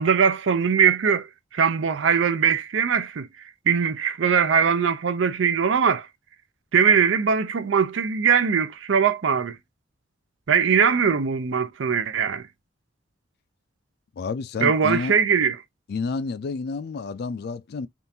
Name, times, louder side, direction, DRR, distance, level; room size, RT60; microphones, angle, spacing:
voice 1, 0.0-3.3 3.7-6.1 6.7-9.6 10.5-12.5 14.6-15.6, right 6 dB, 70° right, 0.5 m, -21 dB
voice 2, 14.2-15.1 15.9-17.9, left 4 dB, 55° left, 0.3 m, -30 dB
3.6 x 2.5 x 2.7 m
head